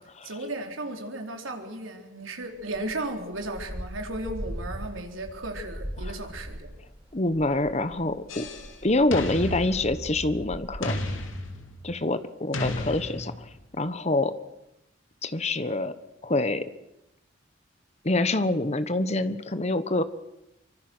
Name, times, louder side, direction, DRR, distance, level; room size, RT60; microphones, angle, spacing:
voice 1, 0.2-6.8, right 2 dB, 80° right, 3 dB, 4.0 m, -35 dB
sound 1, 2.6-11.1, equal, 10° right, 3.8 m, -40 dB
voice 2, 7.1-8.5 8.8-11.0 11.8-13.5 13.8-14.3 15.2-15.9 16.2-16.6 18.0-20.0, left 2 dB, 35° left, 12 dB, 1.2 m, -26 dB
sound 2, 8.3-8.7 9.1-10.4 10.8-11.9 12.5-13.6, left 1 dB, 80° left, 2.8 m, -33 dB
25.0 x 24.5 x 6.3 m, 0.90 s
head